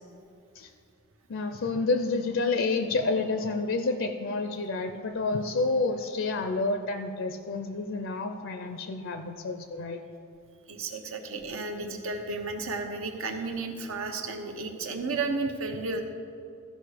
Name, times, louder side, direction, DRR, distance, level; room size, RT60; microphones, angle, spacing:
voice 1, 1.3-10.0, left 3 dB, 60° left, 7 dB, 0.5 m, -29 dB
voice 2, 10.7-16.0, right 3 dB, 75° right, 4 dB, 1.0 m, -33 dB
14.0 x 5.3 x 5.0 m, 2.5 s
head